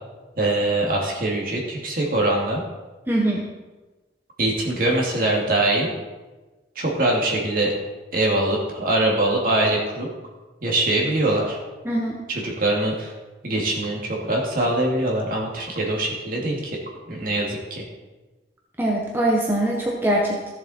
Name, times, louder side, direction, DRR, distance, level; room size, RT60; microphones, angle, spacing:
voice 1, 0.4-2.6 4.4-5.9 6.8-7.7 8.1-10.1 10.6-11.6 12.3-13.1 13.4-16.8 17.1-17.8, right 1 dB, 50° right, -2 dB, 2.4 m, -23 dB
voice 2, 3.1-3.4 11.8-12.2 18.8-20.5, right 1 dB, 10° right, -3 dB, 1.1 m, -22 dB
14.5 x 7.1 x 4.4 m, 1.2 s
head